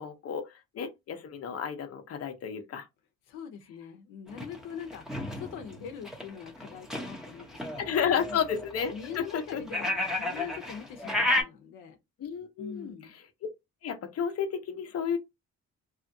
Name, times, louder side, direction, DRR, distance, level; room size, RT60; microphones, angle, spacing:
voice 1, 0.0-2.9 7.8-9.6 10.4-10.5 12.2-13.0 13.8-15.2, left 7 dB, 55° left, 0.7 m, -32 dB
voice 2, 3.3-8.4 8.9-12.0 12.6-13.2, left 7 dB, 90° left, 0.7 m, -43 dB
sound 1, 4.3-11.4, left 1 dB, ahead, 0.8 m, -33 dB
2.8 x 2.4 x 2.6 m
cardioid pair, 90°, 30 cm